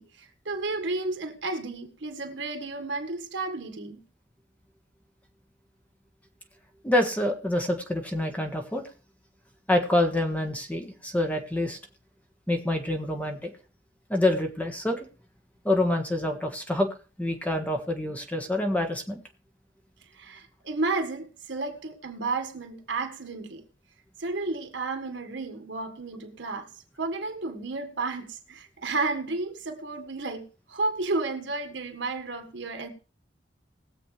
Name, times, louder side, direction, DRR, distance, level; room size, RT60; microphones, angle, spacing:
voice 1, 0.0-4.0 20.1-23.6 24.2-26.7 27.0-32.9, right 3 dB, 75° right, 1.7 m, -32 dB
voice 2, 6.8-8.8 9.7-11.8 12.5-13.5 14.1-15.1 15.6-16.9 17.2-19.2, left 1 dB, 10° left, 1.4 m, -26 dB
20.5 x 7.5 x 3.3 m
head